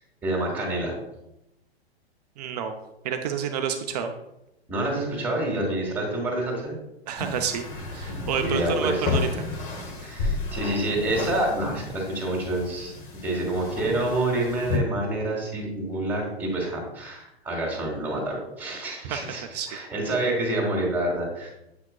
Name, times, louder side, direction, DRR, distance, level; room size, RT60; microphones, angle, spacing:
voice 1, 0.2-0.9 4.7-6.8 8.4-9.1 10.0-21.5, right 1 dB, 5° right, -1 dB, 2.0 m, -28 dB
voice 2, 2.4-2.7 3.0-4.1 7.1-9.3 19.0-19.7, right 8 dB, 40° right, 5 dB, 0.6 m, -29 dB
sound 1, 7.2-14.8, left 3 dB, 25° left, 1.1 m, -32 dB
8.0 x 5.7 x 2.3 m, 0.88 s
figure-of-eight pair, 110°, 32 cm